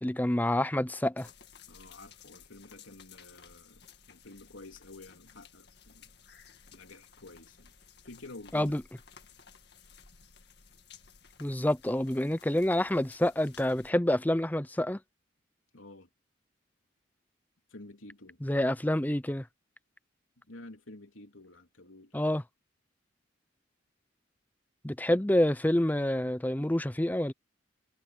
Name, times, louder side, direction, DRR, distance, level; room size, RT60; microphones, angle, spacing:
voice 1, 0.0-1.3 8.5-8.8 11.4-15.0 18.4-19.5 22.1-22.4 24.8-27.3, left 1 dB, 10° left, 0.6 m, -27 dB
sound 1, 1.2-13.9, left 7 dB, 55° left, 2.1 m, -56 dB
voice 2, 1.7-6.2 6.7-7.7 8.0-8.8 15.7-16.1 17.7-18.4 20.4-22.3, left 2 dB, 85° left, 3.4 m, -50 dB
head